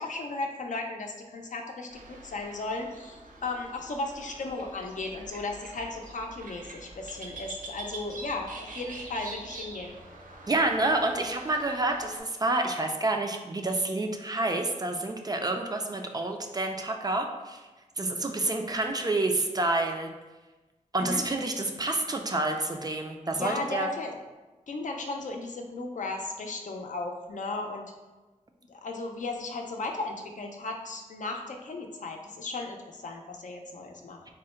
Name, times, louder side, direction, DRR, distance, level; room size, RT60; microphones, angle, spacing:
voice 1, 0.0-9.9 18.8-18.9 21.0-21.2 23.4-24.1 24.7-27.8 28.7-34.2, left 3 dB, 65° left, 2 dB, 0.5 m, -35 dB
sound 1, 1.9-12.2, right 2 dB, 80° right, 0.6 m, -45 dB
voice 2, 10.5-17.6 18.0-20.1 20.9-23.9, right 2 dB, 30° right, 3 dB, 0.3 m, -28 dB
3.6 x 2.1 x 4.3 m, 1.2 s
wide cardioid pair, 115°, 14 cm